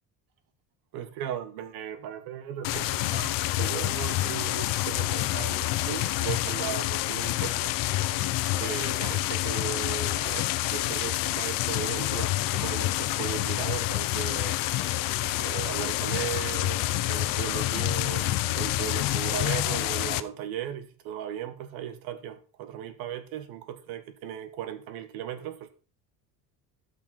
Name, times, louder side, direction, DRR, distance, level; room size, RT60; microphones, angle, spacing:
voice 1, 0.9-8.3 8.6-25.7, right 10 dB, 70° right, 1.6 m, -37 dB
sound 1, 2.6-20.2, left 16 dB, 60° left, 0.7 m, -28 dB
12.5 x 5.8 x 4.4 m
cardioid pair, 165°, 38 cm